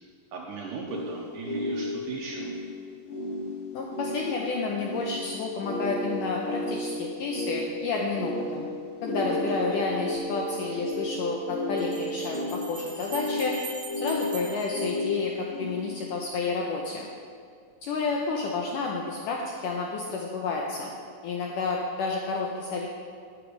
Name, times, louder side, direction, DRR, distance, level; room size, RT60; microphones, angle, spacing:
voice 1, 0.3-2.5 10.7-10.8, right 4 dB, 70° right, -1 dB, 2.1 m, -37 dB
sound 1, 0.9-16.2, left 1 dB, 30° left, 3.2 m, -33 dB
voice 2, 3.7-8.7 9.0-13.5 14.0-17.1 17.8-20.9 21.2-22.9, left 4 dB, 75° left, -1 dB, 1.9 m, -30 dB
Bell, 10.1-10.2 11.8-15.7, right 4 dB, 55° right, 1.7 m, -43 dB
11.5 x 9.5 x 5.1 m, 2.2 s
omnidirectional pair, 4.7 m